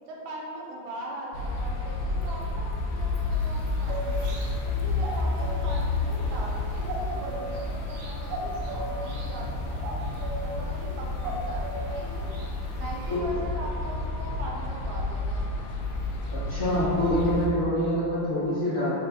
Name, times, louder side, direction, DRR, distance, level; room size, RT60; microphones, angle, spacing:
voice 1, 0.0-4.3 4.6-10.0 10.4-12.4 12.8-15.6, right 1 dB, 75° right, -3 dB, 1.4 m, -40 dB
sound 1, 1.3-17.5, left 3 dB, 75° left, 1.2 m, -30 dB
sound 2, 3.3-13.2, right 1 dB, 90° right, 0.8 m, -38 dB
voice 2, 16.3-18.9, equal, 45° left, -13 dB, 0.8 m, -26 dB
3.9 x 2.6 x 4.0 m, 2.7 s
omnidirectional pair, 2.3 m